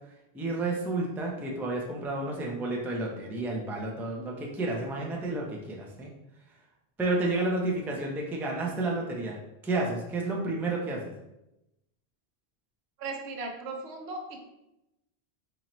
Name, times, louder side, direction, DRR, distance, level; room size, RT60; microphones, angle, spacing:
voice 1, 0.3-6.1 7.0-9.4 9.6-11.1, right 2 dB, 5° right, -2 dB, 0.3 m, -31 dB
voice 2, 13.0-14.4, right 3 dB, 80° right, 3 dB, 0.9 m, -37 dB
4.3 x 2.7 x 3.0 m, 0.91 s
omnidirectional pair, 1.1 m